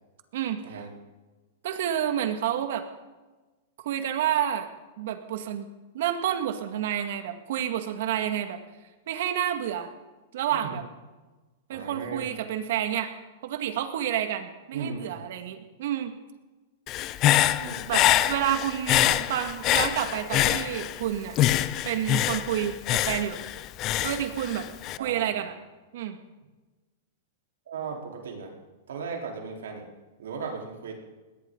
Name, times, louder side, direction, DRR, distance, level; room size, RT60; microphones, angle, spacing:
voice 1, 1.6-2.8 3.8-4.7 5.0-5.7 5.9-8.6 9.1-9.9 10.3-10.8 11.7-13.1 13.4-16.1 17.9-21.4 21.8-23.4 24.0-24.7 25.0-25.5 25.9-26.2, right 10 dB, 65° right, 7 dB, 2.0 m, -29 dB
voice 2, 11.7-12.3 14.7-15.2 17.5-17.8 18.9-19.2 25.0-25.4 27.7-28.5 28.9-29.8 30.2-30.9, right 5 dB, 85° right, 0 dB, 4.2 m, -36 dB
Human voice / Breathing, 16.9-21.0 21.4-25.0, left 13 dB, 30° left, 0.7 m, -25 dB
20.0 x 18.0 x 4.0 m, 1.2 s
hypercardioid pair, 150°, 0 cm